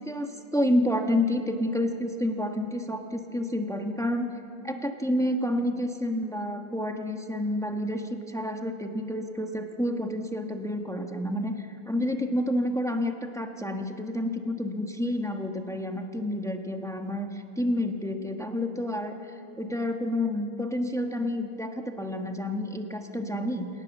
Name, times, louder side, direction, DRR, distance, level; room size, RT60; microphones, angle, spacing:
voice 1, 0.0-4.3 4.6-19.2 19.6-23.7, left 1 dB, ahead, 4 dB, 0.7 m, -29 dB
27.0 x 18.0 x 7.4 m, 2.6 s
omnidirectional pair, 2.4 m